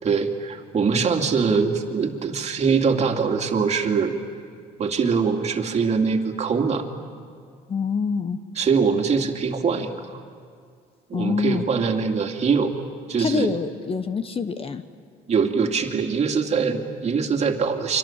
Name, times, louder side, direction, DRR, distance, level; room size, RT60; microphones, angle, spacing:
voice 1, 0.0-4.2 4.8-6.9 8.6-10.2 11.1-12.7 13.1-13.6 15.3-18.0, right 5 dB, 40° right, 3 dB, 2.6 m, -23 dB
voice 2, 7.7-8.4 11.1-11.6 13.2-14.8, left 5 dB, 35° left, 10 dB, 1.2 m, -25 dB
30.0 x 25.0 x 7.5 m, 2.2 s
cardioid pair, 110°, 17 cm